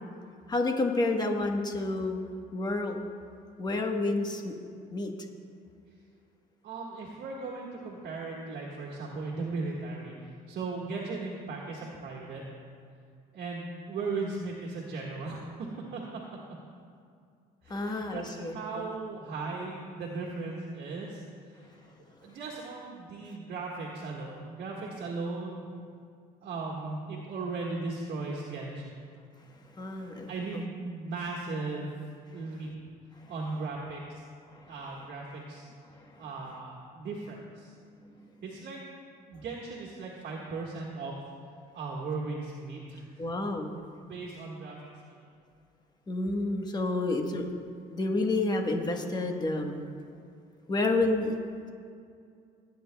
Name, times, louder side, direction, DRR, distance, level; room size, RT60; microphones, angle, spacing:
voice 1, 0.5-2.2 2.5-3.0 3.6-4.5 4.9-5.1 17.7-18.9 29.7-30.3 34.5-34.7 35.9-36.2 38.0-38.3 43.2-43.8 46.1-47.5 47.9-49.8 50.7-51.3, left 2 dB, 25° left, 3 dB, 1.2 m, -30 dB
voice 2, 6.6-10.2 10.5-12.4 13.3-16.0 17.6-21.2 21.5-21.9 22.2-25.6 26.4-29.0 30.3-31.9 32.3-32.7 33.3-34.2 34.7-35.7 36.2-37.7 38.4-38.8 39.2-41.1 41.7-43.2 44.0-44.8 45.0-45.3, right 3 dB, 65° right, -3 dB, 1.6 m, -37 dB
18.0 x 9.3 x 2.3 m, 2.3 s
cardioid pair, 110°, 17 cm